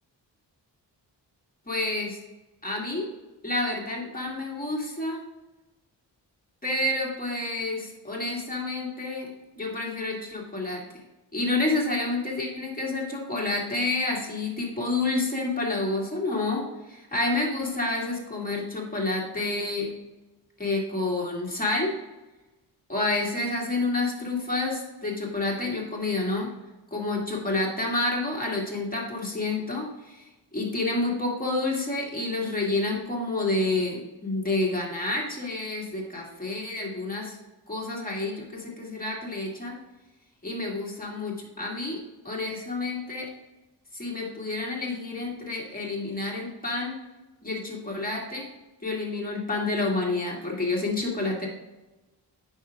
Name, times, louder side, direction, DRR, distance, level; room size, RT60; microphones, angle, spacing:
voice 1, 1.7-2.2 2.6-3.1 3.4-5.2 6.6-9.3 9.6-10.8 11.3-19.9 20.6-21.9 22.9-26.5 26.9-37.4 37.7-39.8 40.4-42.0 42.2-43.3 43.9-47.0 47.4-48.5 48.8-51.5, left 2 dB, 20° left, -3 dB, 2.3 m, -29 dB
9.0 x 5.9 x 2.5 m, 1.1 s
cardioid pair, 65°, 43 cm